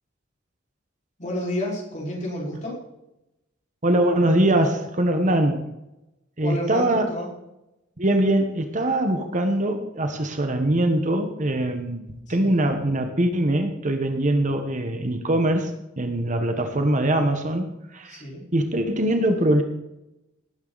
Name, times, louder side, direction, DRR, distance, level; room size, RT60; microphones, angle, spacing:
voice 1, 1.2-2.8 5.2-5.4 6.4-7.3 12.3-12.5 18.0-18.4, left 1 dB, 40° left, -3 dB, 5.1 m, -31 dB
voice 2, 3.8-5.6 6.4-7.0 8.0-18.2 18.5-19.6, right 1 dB, 40° right, 6 dB, 1.3 m, -22 dB
18.5 x 9.4 x 4.1 m, 0.91 s
head